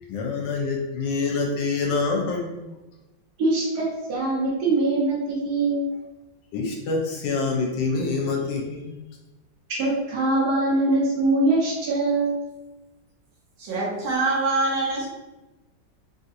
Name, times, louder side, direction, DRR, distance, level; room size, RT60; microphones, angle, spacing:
voice 1, 0.1-2.7 6.5-9.0, left 4 dB, 75° left, 0 dB, 1.3 m, -26 dB
voice 2, 3.4-5.9 9.7-12.3, right 2 dB, 65° right, -8 dB, 1.2 m, -23 dB
voice 3, 13.6-15.1, right 3 dB, 85° right, -3 dB, 1.6 m, -24 dB
3.4 x 2.8 x 2.4 m, 1.0 s
omnidirectional pair, 2.0 m